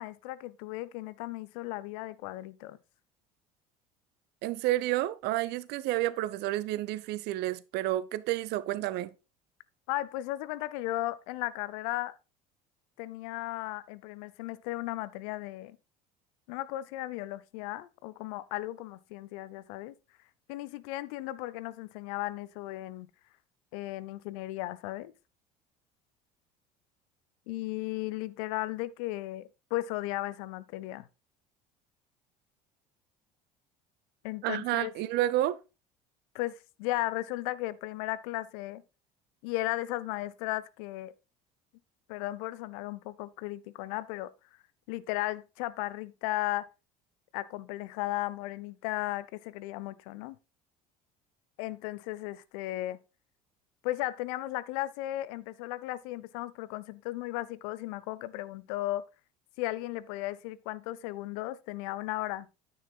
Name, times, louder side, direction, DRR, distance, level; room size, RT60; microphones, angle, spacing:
voice 1, 0.0-2.8 9.9-12.2 13.0-15.8 16.5-19.9 20.5-23.1 23.7-25.1 27.5-31.1 34.2-34.9 36.3-38.8 39.4-41.1 42.1-44.3 44.9-46.7 47.3-50.4 51.6-53.0 53.8-59.0 59.6-62.5, left 17 dB, 65° left, 0.6 m, -35 dB
voice 2, 4.4-9.1 34.4-35.6, right 15 dB, 55° right, 0.7 m, -30 dB
9.5 x 9.4 x 2.3 m
figure-of-eight pair, 65°, 21 cm